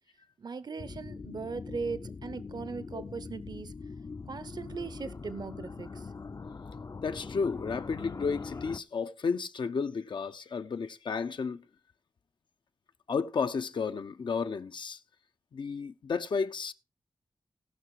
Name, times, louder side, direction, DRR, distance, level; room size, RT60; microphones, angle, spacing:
voice 1, 0.4-3.7 4.2-6.1, right 4 dB, 60° right, 0.7 m, -39 dB
sound 1, 0.8-8.8, left 4 dB, 45° left, 0.6 m, -42 dB
voice 2, 7.0-11.6 13.1-15.0 15.5-16.7, left 5 dB, 80° left, 0.9 m, -32 dB
18.0 x 6.0 x 4.7 m
cardioid pair, 60°, 8 cm